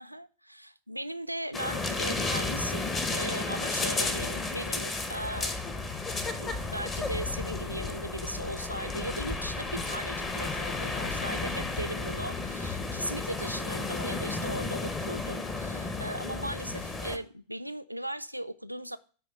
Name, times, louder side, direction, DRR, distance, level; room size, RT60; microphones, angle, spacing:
voice 1, 0.0-5.6 6.4-19.0, right 1 dB, 90° right, 0.3 m, -38 dB
sound 1, 1.5-17.2, left 3 dB, 25° left, 0.8 m, -33 dB
sound 2, 6.5-11.9, left 6 dB, 45° left, 1.8 m, -43 dB
8.4 x 3.2 x 6.3 m
figure-of-eight pair, 90°, 0 cm